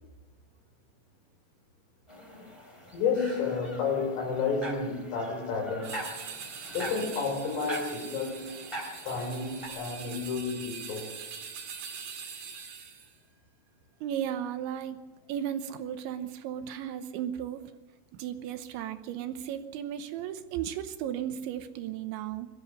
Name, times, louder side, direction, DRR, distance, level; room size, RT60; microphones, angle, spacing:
sound 1, 2.1-9.7, right 1 dB, 10° left, 2.1 m, -42 dB
voice 1, 2.9-6.0 6.7-8.5 9.0-11.1, left 5 dB, 90° left, 8.0 m, -31 dB
sound 2, 5.8-13.1, right 6 dB, 50° right, 3.7 m, -43 dB
voice 2, 14.0-15.0 15.3-17.6 18.1-22.5, right 10 dB, 80° right, 3.1 m, -35 dB
22.0 x 13.0 x 9.6 m
omnidirectional pair, 5.7 m